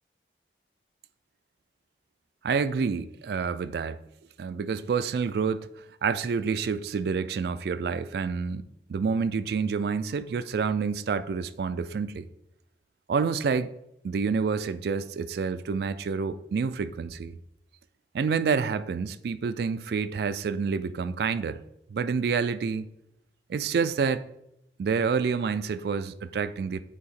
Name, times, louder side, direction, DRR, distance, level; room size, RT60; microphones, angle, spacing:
voice 1, 2.4-4.0 4.4-5.7 6.0-12.2 13.1-13.7 14.0-17.4 18.1-21.6 21.9-22.9 23.5-24.2 24.8-26.8, right 5 dB, 65° right, 0.3 m, -28 dB
8.2 x 2.8 x 4.2 m
head